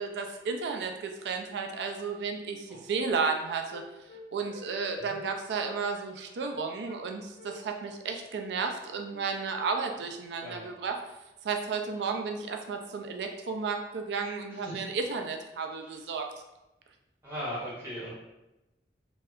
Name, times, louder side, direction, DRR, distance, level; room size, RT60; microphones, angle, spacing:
voice 1, 0.0-3.8 4.3-11.0 11.4-16.3, right 5 dB, 75° right, 4 dB, 0.3 m, -33 dB
Wind instrument woodwind instrument, 2.4-2.6 2.9-4.7 4.9-5.2 5.4-5.6 5.9-6.1 6.4-7.0 7.4-9.2, left 1 dB, 40° left, 0.3 m, -50 dB
voice 2, 14.5-14.8 15.8-16.0 17.2-18.1, equal, 15° right, -9 dB, 0.7 m, -38 dB
2.7 x 2.1 x 2.3 m, 0.96 s
head